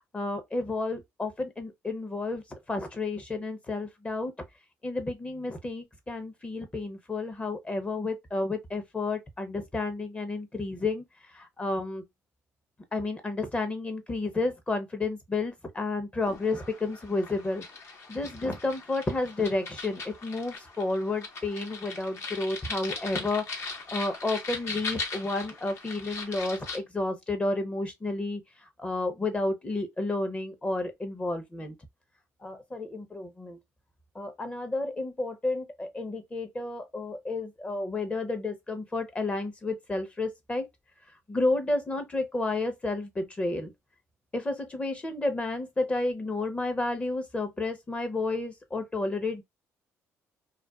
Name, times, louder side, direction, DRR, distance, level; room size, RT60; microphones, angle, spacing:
voice 1, 0.1-4.3 4.8-11.0 11.3-12.0 12.9-17.6 18.1-28.4 28.8-31.7 32.4-33.6 34.1-40.7 41.3-43.7 44.3-49.4, left 2 dB, 20° left, 0.7 m, -31 dB
sound 1, 16.2-26.8, left 4 dB, 50° left, 0.9 m, -39 dB
2.4 x 2.2 x 2.2 m
cardioid pair, 95°, 6 cm